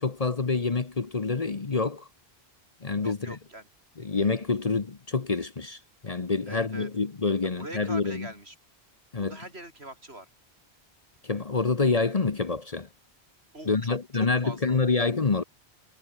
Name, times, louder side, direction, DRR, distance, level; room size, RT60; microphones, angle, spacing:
voice 1, 0.0-2.1 2.8-3.3 4.0-8.3 9.1-9.4 11.2-12.9 13.7-15.4, left 4 dB, 35° left, 1.1 m, -27 dB
voice 2, 3.0-3.7 6.5-6.9 7.6-8.5 9.2-10.3 13.5-14.8, right 1 dB, 75° right, 6.7 m, -43 dB
omnidirectional pair, 1.1 m